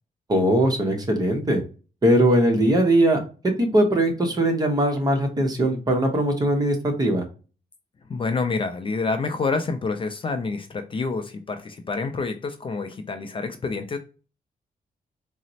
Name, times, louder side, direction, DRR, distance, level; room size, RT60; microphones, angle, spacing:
voice 1, 0.3-1.6 2.0-3.2 3.6-7.2, right 1 dB, 25° right, 3 dB, 0.8 m, -20 dB
voice 2, 8.1-14.0, left 4 dB, 35° left, 7 dB, 0.4 m, -28 dB
4.0 x 2.0 x 2.6 m, 0.35 s
wide cardioid pair, 135°, 15 cm